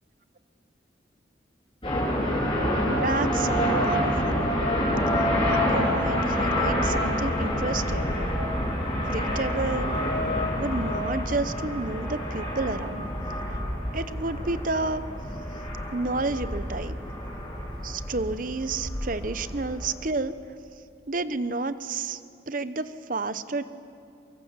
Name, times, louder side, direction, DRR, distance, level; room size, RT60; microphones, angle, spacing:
sound 1, 1.8-19.9, equal, 25° left, 7.2 m, -27 dB
voice 1, 2.9-4.5 5.1-8.1 9.1-10.0 10.5-13.1 13.5-13.6 13.9-15.0 15.9-17.0 17.8-20.4 21.1-22.2 22.5-23.6, right 3 dB, 50° right, 12 dB, 0.9 m, -30 dB
23.5 x 23.5 x 7.4 m, 2.5 s
head